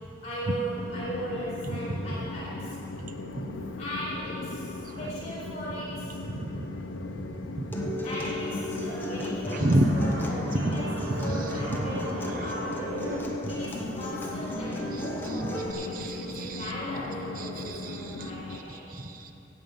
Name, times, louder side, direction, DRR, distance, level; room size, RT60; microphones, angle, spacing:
voice 1, 0.2-2.8 3.8-6.2 8.0-13.0 13.5-18.9, equal, 35° left, -7 dB, 3.3 m, -38 dB
Train, 0.8-18.6, left 2 dB, 80° left, 0.6 m, -38 dB
voice 2, 6.3-6.7 7.6-8.0 9.5-9.9 10.5-10.7 11.4-11.5 11.8-11.9 12.3-12.5 15.7-16.7 17.4-18.3 18.7-19.3, right 1 dB, 45° right, 6 dB, 0.7 m, -30 dB
Acoustic guitar, 7.7-15.7, equal, 10° left, 0.8 m, -36 dB
sound 1, 9.3-13.2, equal, 75° right, 1.7 m, -38 dB
17.0 x 7.2 x 5.3 m, 2.8 s
head